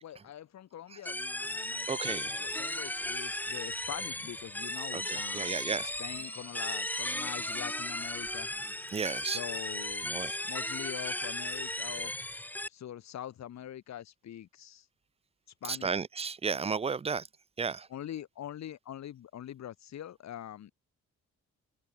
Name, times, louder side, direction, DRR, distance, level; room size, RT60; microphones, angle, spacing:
voice 1, 0.0-8.5 9.3-10.1 10.4-12.1 12.7-14.9 15.6-16.0 17.9-20.7, left 11 dB, 65° left, 1.9 m, -44 dB
sound 1, 1.1-12.7, left 1 dB, 5° left, 1.4 m, -36 dB
voice 2, 1.9-2.4 4.9-5.9 8.9-9.4 10.1-10.3 15.7-17.3 17.6-17.9, right 5 dB, 20° right, 0.5 m, -33 dB
cardioid pair, 90°, 30 cm